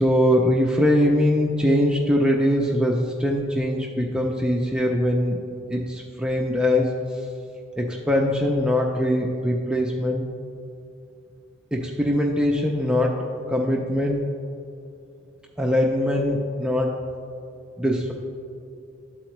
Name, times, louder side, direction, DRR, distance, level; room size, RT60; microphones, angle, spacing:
voice 1, 0.0-5.4 5.7-6.9 7.8-10.3 11.7-13.2 13.5-14.2 15.6-17.0 17.8-18.1, left 1 dB, 5° right, -1 dB, 0.3 m, -22 dB
12.0 x 4.2 x 3.0 m, 2.5 s
head